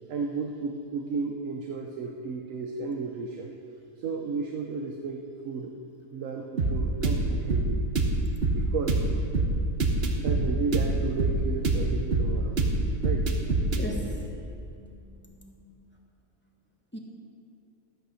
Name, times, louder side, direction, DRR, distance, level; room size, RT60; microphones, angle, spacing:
voice 1, 0.1-3.5 4.0-5.7 6.1-7.9 8.5-9.0 10.0-12.6 13.0-13.3, right 4 dB, 90° right, 2 dB, 1.2 m, -33 dB
sound 1, 6.6-13.8, right 2 dB, 50° right, 1.2 m, -25 dB
voice 2, 13.7-15.5 16.9-17.0, equal, 10° left, -1 dB, 1.3 m, -40 dB
12.5 x 9.2 x 6.3 m, 2.6 s
omnidirectional pair, 1.3 m